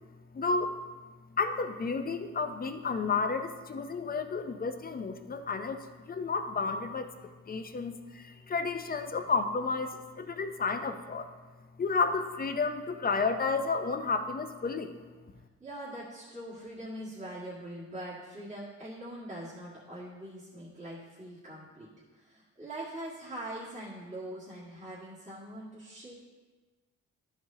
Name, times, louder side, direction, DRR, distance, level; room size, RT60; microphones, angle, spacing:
voice 1, 0.3-0.8 1.3-7.1 7.5-11.3 11.8-15.0, left 4 dB, 30° left, 7 dB, 0.6 m, -31 dB
voice 2, 15.6-26.1, right 1 dB, 25° right, -9 dB, 2.0 m, -43 dB
11.5 x 4.6 x 2.8 m, 1.3 s
cardioid pair, 90°, 30 cm